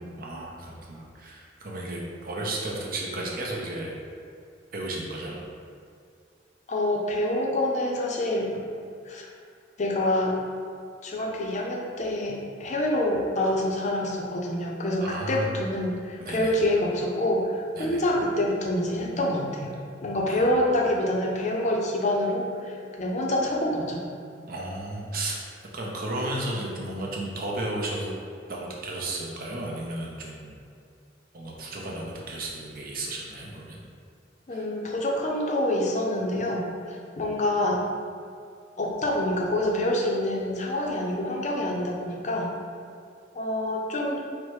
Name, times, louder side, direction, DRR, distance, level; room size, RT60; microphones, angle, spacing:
voice 1, 0.2-4.0 4.7-5.4 15.0-15.6 16.2-16.5 17.8-18.0 20.3-20.5 24.4-25.4 25.7-28.1 28.5-30.5 31.3-33.8 34.5-34.6, right 1 dB, 50° right, -2 dB, 0.7 m, -33 dB
voice 2, 6.7-8.5 9.0-9.3 9.8-10.4 11.0-19.7 20.0-24.0 34.5-37.8 38.8-42.5 43.3-44.2, left 1 dB, 40° left, -1 dB, 0.5 m, -26 dB
4.4 x 2.1 x 4.6 m, 2.3 s
head